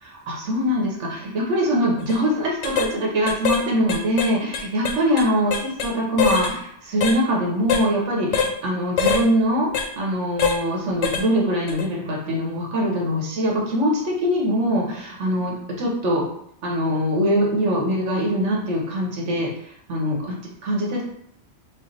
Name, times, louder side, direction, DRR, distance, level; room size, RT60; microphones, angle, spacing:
voice 1, 0.0-16.3 16.6-19.5 19.9-21.0, equal, 80° right, -3 dB, 1.3 m, -23 dB
sound 1, 2.0-2.2 2.6-2.9 3.3-3.6 3.9-5.9 6.2-6.5 7.0-7.2 7.7-7.9 8.3-8.5 9.0-9.3 9.7-9.9 10.4-10.6 11.0-11.3 11.7-11.8, left 6 dB, 90° left, 0.9 m, -23 dB
4.9 x 2.1 x 3.1 m, 0.72 s
omnidirectional pair, 1.2 m